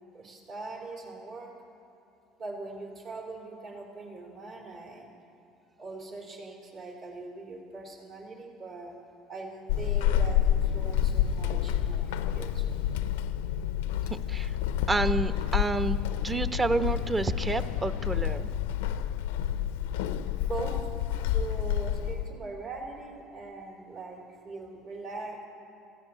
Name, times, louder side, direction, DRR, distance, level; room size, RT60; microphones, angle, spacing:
voice 1, 0.1-1.5 2.4-5.1 5.8-8.9 9.3-12.8 20.4-20.9 21.3-25.4, right 3 dB, 55° right, -2 dB, 3.2 m, -41 dB
Walk footsteps / Squeak, 9.7-22.4, left 10 dB, 75° left, 0.5 m, -29 dB
voice 2, 14.1-14.5 14.9-18.5, right 3 dB, 25° right, 11 dB, 0.8 m, -29 dB
28.0 x 16.0 x 2.9 m, 2.9 s
hypercardioid pair, 65°, 0 cm